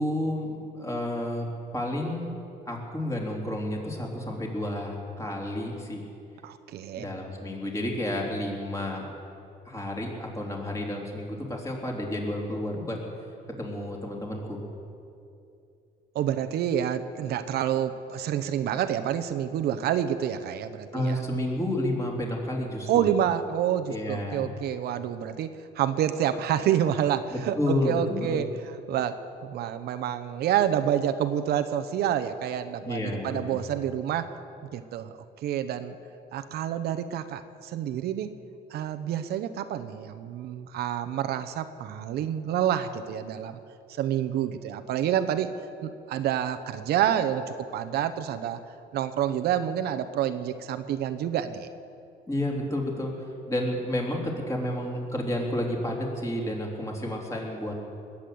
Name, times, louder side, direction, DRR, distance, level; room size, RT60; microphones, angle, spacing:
voice 1, 0.0-1.5 1.7-2.3 2.6-6.0 7.0-9.1 9.6-13.0 13.6-14.6 20.9-23.1 23.9-24.5 27.3-28.4 32.9-33.6 52.3-57.7, left 1 dB, 20° left, -1 dB, 3.4 m, -30 dB
voice 2, 6.4-7.0 16.1-21.2 22.9-34.3 34.7-36.0 36.3-38.3 38.7-43.6 44.0-45.5 45.8-48.6 48.9-51.7, right 10 dB, 70° right, 10 dB, 0.8 m, -28 dB
20.0 x 8.5 x 7.8 m, 2.6 s
cardioid pair, 110°, 17 cm